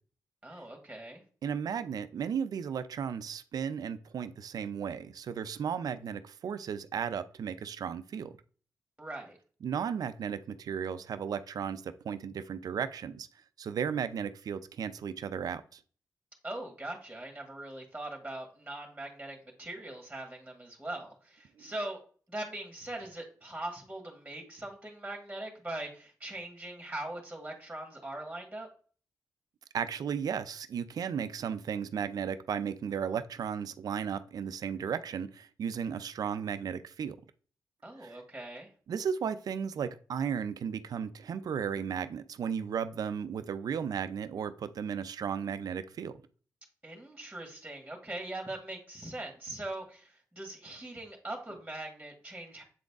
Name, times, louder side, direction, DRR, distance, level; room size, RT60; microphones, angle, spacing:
voice 1, 0.4-1.2 9.0-9.4 16.4-22.0 22.3-28.7 37.8-38.7 46.8-52.6, right 1 dB, 10° right, 1.7 m, -41 dB
voice 2, 1.4-8.3 9.6-13.3 13.6-15.8 29.7-37.2 38.0-38.2 38.9-46.1, right 7 dB, 70° right, 0.5 m, -35 dB
7.5 x 3.9 x 3.5 m
cardioid pair, 60°, 7 cm